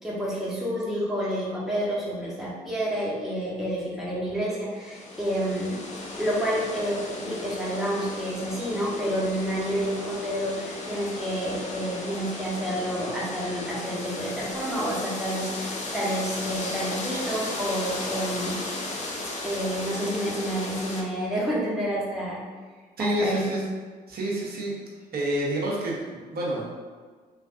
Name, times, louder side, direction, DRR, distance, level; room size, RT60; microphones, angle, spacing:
voice 1, 0.0-5.8 6.2-18.6 19.4-22.4 23.0-23.5, equal, ahead, -7 dB, 1.2 m, -29 dB
sound 1, 4.7-21.0, left 2 dB, 35° left, 0.6 m, -35 dB
voice 2, 23.0-23.6 24.1-24.7 25.1-26.7, right 1 dB, 45° right, -3 dB, 0.9 m, -28 dB
3.4 x 2.5 x 2.6 m, 1.5 s
hypercardioid pair, 45°, 21 cm